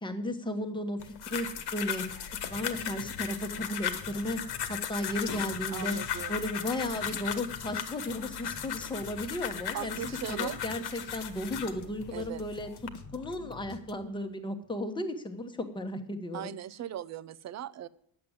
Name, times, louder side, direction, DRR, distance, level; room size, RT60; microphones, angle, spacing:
voice 1, 0.0-2.1 2.5-4.4 4.7-6.0 6.3-9.9 10.3-16.5, left 1 dB, 10° left, 6 dB, 1.1 m, -35 dB
sound 1, 1.0-11.8 12.4-12.9, left 9 dB, 55° left, 1.4 m, -37 dB
sound 2, 2.1-14.3, left 5 dB, 40° left, 1.1 m, -48 dB
voice 2, 5.7-6.5 6.8-7.1 9.7-10.6 12.1-12.4 16.3-17.9, right 11 dB, 35° right, 17 dB, 0.5 m, -39 dB
10.5 x 7.7 x 7.2 m, 0.67 s
cardioid pair, 150°, 48 cm